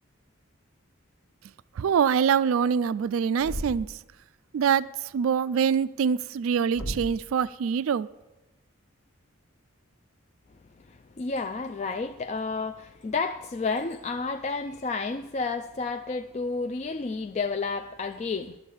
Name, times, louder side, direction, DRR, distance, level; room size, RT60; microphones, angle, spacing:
voice 1, 1.8-4.0 4.5-8.1, right 7 dB, 75° right, 0.3 m, -24 dB
Thump thud, 3.4-4.0 6.7-7.3, equal, 85° left, 1.1 m, -35 dB
voice 2, 10.8-18.6, left 4 dB, 30° left, 0.3 m, -31 dB
12.0 x 7.2 x 8.3 m
head